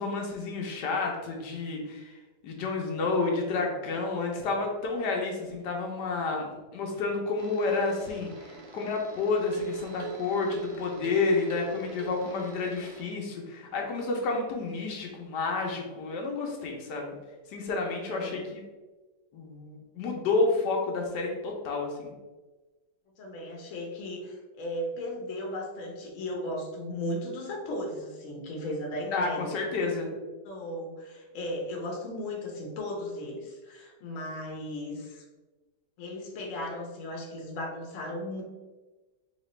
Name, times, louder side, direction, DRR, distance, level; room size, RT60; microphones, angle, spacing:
voice 1, 0.0-2.2 2.4-17.1 17.5-18.6 19.3-22.1 29.1-30.1, left 3 dB, 80° left, 0 dB, 1.3 m, -30 dB
sound 1, 7.4-13.0, right 4 dB, 70° right, 0.6 m, -43 dB
voice 2, 18.1-18.5 23.2-29.5 29.8-29.9 30.4-35.2 36.0-38.4, left 1 dB, 55° left, 0 dB, 1.0 m, -36 dB
4.1 x 2.8 x 3.1 m, 1.2 s
omnidirectional pair, 1.8 m